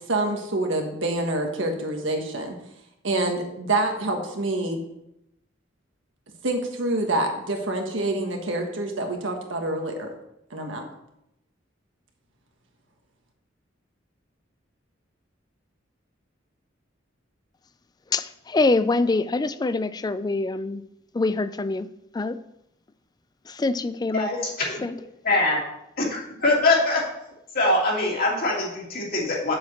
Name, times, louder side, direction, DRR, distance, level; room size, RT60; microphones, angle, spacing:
voice 1, 0.0-2.6 3.0-4.8 6.4-10.1 10.5-10.9, right 2 dB, 85° right, 3 dB, 1.5 m, -26 dB
voice 2, 18.1-20.8 21.1-21.9 22.1-22.4 23.5-24.3 24.8-25.0, left 3 dB, 20° left, 14 dB, 0.4 m, -24 dB
voice 3, 25.2-25.6 26.0-27.0 27.5-29.6, left 2 dB, 50° left, -3 dB, 2.6 m, -22 dB
7.2 x 5.0 x 7.2 m, 0.82 s
head